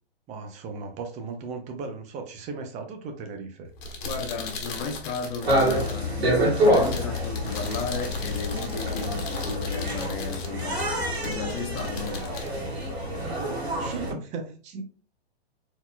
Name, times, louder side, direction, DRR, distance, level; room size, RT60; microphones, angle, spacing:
voice 1, 0.3-3.7 13.3-14.9, right 4 dB, 20° right, 0.8 m, -37 dB
sound 1, 3.6-13.5, left 3 dB, 55° left, 1.4 m, -39 dB
voice 2, 4.0-12.4, left 4 dB, 25° left, 0.6 m, -35 dB
sound 2, 5.4-14.1, equal, 90° right, 2.0 m, -27 dB
4.1 x 4.1 x 2.3 m
hypercardioid pair, 130°, 31 cm